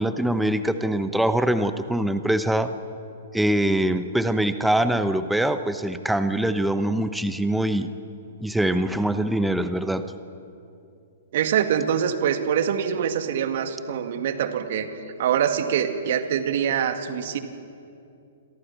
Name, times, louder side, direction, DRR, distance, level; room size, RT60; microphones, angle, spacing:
voice 1, 0.0-2.7 3.3-7.9 8.4-10.1, right 1 dB, 5° right, 10 dB, 0.9 m, -23 dB
voice 2, 11.3-14.9 15.2-17.4, right 8 dB, 55° right, 7 dB, 2.1 m, -24 dB
29.0 x 22.5 x 6.0 m, 2.6 s
figure-of-eight pair, 115°, 0 cm